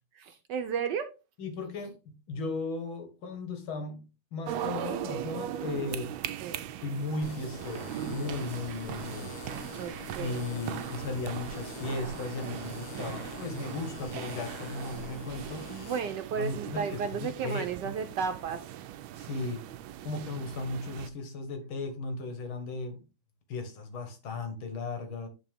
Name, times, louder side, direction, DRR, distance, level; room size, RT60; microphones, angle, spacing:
voice 1, 0.2-1.1 6.4-6.7 9.8-10.6 15.7-18.7 19.4-19.5, right 6 dB, 70° right, 1.2 m, -34 dB
voice 2, 1.4-6.2 6.8-9.8 10.2-15.9 16.4-18.0 19.2-19.7 20.0-23.0 23.5-25.3, left 3 dB, 90° left, 2.3 m, -36 dB
sound 1, 4.4-21.1, right 11 dB, 85° right, 1.4 m, -39 dB
sound 2, 7.2-16.0, left 7 dB, 65° left, 1.2 m, -45 dB
10.5 x 3.8 x 3.5 m
omnidirectional pair, 2.2 m